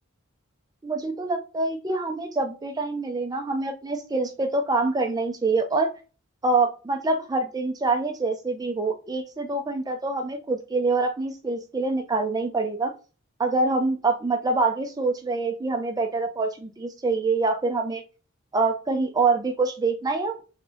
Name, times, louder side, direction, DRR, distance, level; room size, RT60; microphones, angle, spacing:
voice 1, 0.8-5.9 6.4-12.9 13.4-18.0 18.5-20.3, right 3 dB, 20° right, 5 dB, 0.4 m, -25 dB
3.4 x 2.7 x 3.3 m, 0.34 s
head